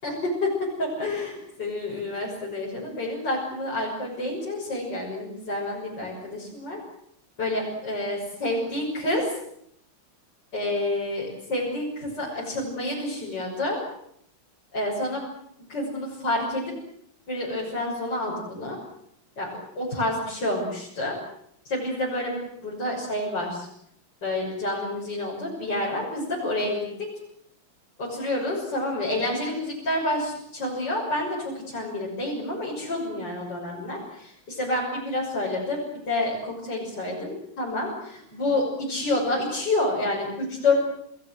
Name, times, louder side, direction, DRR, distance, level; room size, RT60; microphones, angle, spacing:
voice 1, 0.0-6.8 7.4-9.3 10.5-13.8 14.7-15.2 15.7-16.7 17.3-18.8 19.4-21.2 21.7-23.7 24.2-27.1 28.0-40.8, left 2 dB, 55° left, -4 dB, 7.1 m, -28 dB
29.5 x 20.5 x 7.8 m, 0.72 s
omnidirectional pair, 2.3 m